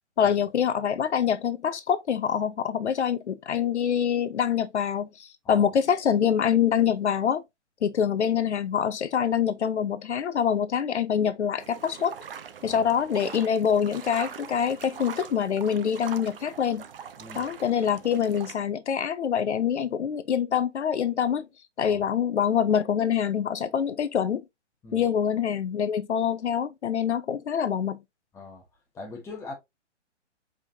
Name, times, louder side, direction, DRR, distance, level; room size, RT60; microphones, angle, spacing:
voice 1, 0.2-7.4 7.8-12.2 12.6-16.8 17.4-21.5 21.8-24.4 24.9-28.0, left 8 dB, 70° left, 0.6 m, -25 dB
sound 1, 11.6-18.6, right 7 dB, 50° right, 0.6 m, -42 dB
voice 2, 17.2-17.5 21.8-22.1 24.8-25.0 28.3-28.6 28.9-29.5, left 3 dB, 5° left, 0.9 m, -41 dB
5.0 x 3.6 x 2.7 m
figure-of-eight pair, 140°, 36 cm